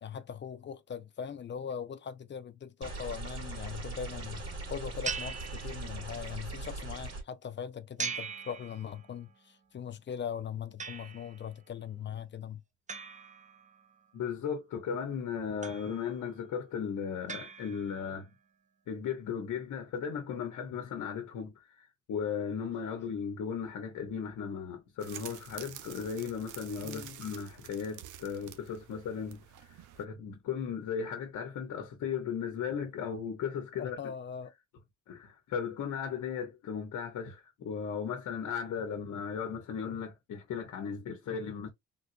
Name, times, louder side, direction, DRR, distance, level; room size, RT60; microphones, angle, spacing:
voice 1, 0.0-12.6 26.8-27.2 33.8-34.5, left 7 dB, 40° left, 0.5 m, -40 dB
sound 1, 2.8-7.2, right 2 dB, 55° right, 2.2 m, -40 dB
sound 2, 5.0-6.3 8.0-9.3 10.8-11.5 12.9-14.0 15.6-16.3 17.3-18.2, right 5 dB, 25° right, 0.6 m, -41 dB
voice 2, 14.1-18.3 18.9-34.0 35.1-41.7, left 7 dB, 70° left, 1.0 m, -36 dB
sound 3, 25.0-30.0, right 11 dB, 80° right, 0.7 m, -48 dB
3.7 x 2.4 x 2.6 m
cardioid pair, 90°, 30 cm